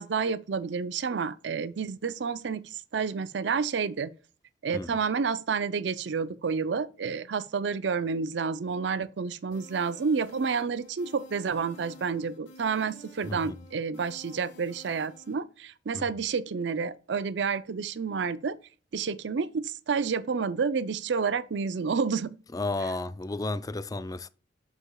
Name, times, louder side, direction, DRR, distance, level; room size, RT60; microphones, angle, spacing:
voice 1, 0.0-4.1 4.6-18.6 18.9-22.3, right 5 dB, 65° right, 0.5 m, -30 dB
sound 1, 9.5-15.3, equal, 80° left, 3.4 m, -51 dB
voice 2, 22.5-24.3, left 2 dB, 20° left, 0.4 m, -33 dB
6.9 x 6.8 x 2.3 m
head